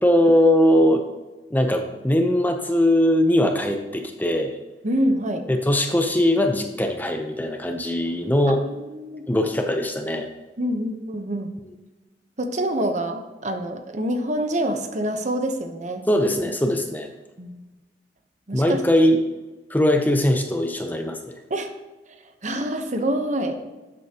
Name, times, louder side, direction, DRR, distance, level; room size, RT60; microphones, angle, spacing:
voice 1, 0.0-1.1 1.5-4.5 5.5-8.6 9.3-10.3 16.1-17.1 18.5-19.2 19.7-21.4, left 1 dB, 10° left, 5 dB, 0.7 m, -20 dB
voice 2, 4.8-5.5 8.6-9.2 10.6-11.5 12.4-16.0 17.4-17.7 18.5-18.8 21.5-21.7 22.4-23.5, right 1 dB, 45° right, 6 dB, 0.9 m, -26 dB
12.5 x 8.1 x 2.9 m, 1.2 s
head